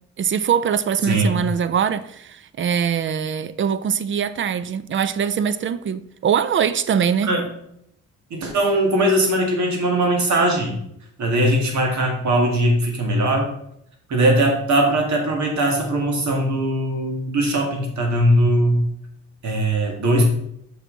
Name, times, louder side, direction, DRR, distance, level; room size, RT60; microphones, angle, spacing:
voice 1, 0.2-7.3, right 7 dB, 40° right, 0.5 m, -22 dB
voice 2, 1.1-1.4 7.2-7.4 8.3-10.8 11.2-13.5 14.1-18.8 19.4-20.3, right 1 dB, 70° right, 2.1 m, -20 dB
6.2 x 5.8 x 4.0 m
cardioid pair, 90°, 30 cm